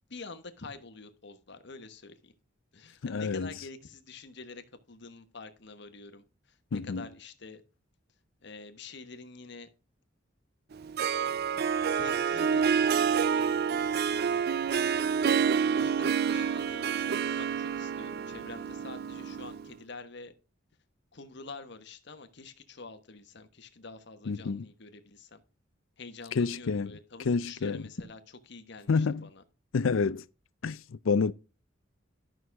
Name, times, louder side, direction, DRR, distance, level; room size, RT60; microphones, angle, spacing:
voice 1, 0.1-2.3 2.7-7.6 8.4-9.7 11.0-11.2 11.9-20.3 21.1-25.4 26.0-29.4, left 3 dB, 60° left, 1.3 m, -47 dB
voice 2, 3.0-3.5 6.7-7.0 24.3-24.6 26.3-26.9 27.3-27.8 28.9-29.3 29.7-30.2 30.6-31.3, left 4 dB, 85° left, 0.5 m, -28 dB
Harp, 10.7-19.7, right 7 dB, 55° right, 0.4 m, -28 dB
12.0 x 6.3 x 3.5 m
head